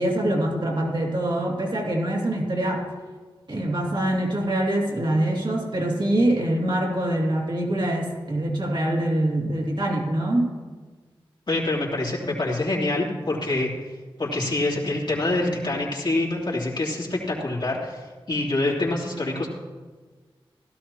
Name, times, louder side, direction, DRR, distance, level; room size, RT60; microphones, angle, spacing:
voice 1, 0.0-2.9 3.5-10.5, right 1 dB, 55° right, -1 dB, 2.6 m, -24 dB
voice 2, 11.5-13.7 14.2-19.5, left 2 dB, 55° left, -4 dB, 2.8 m, -26 dB
16.0 x 12.5 x 2.9 m, 1.4 s
cardioid pair, 50°, 10 cm